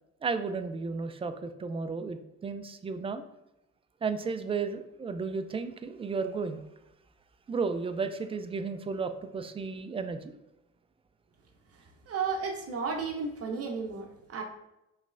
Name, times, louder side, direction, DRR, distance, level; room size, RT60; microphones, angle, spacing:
voice 1, 0.2-3.2 4.0-6.6 7.5-10.3, right 4 dB, 20° right, 9 dB, 0.3 m, -33 dB
voice 2, 11.7-14.4, right 5 dB, 50° right, 3 dB, 0.8 m, -34 dB
5.2 x 3.2 x 2.5 m, 0.90 s
cardioid pair, 90°, 30 cm